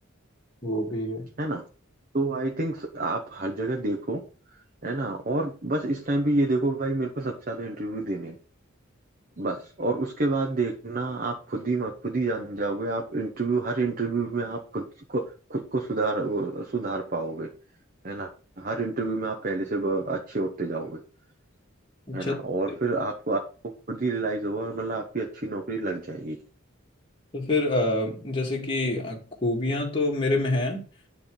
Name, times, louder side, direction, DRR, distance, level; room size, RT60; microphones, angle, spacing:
voice 1, 0.6-1.3 22.1-22.4 22.7-22.8 27.3-30.8, left 2 dB, 25° left, 1.7 m, -26 dB
voice 2, 2.1-4.2 4.8-8.4 9.4-14.8 15.1-15.2 15.5-17.5 18.0-18.3 18.6-21.0 22.1-23.4 23.9-26.4, right 2 dB, 40° right, 1.1 m, -28 dB
9.6 x 3.6 x 4.7 m
head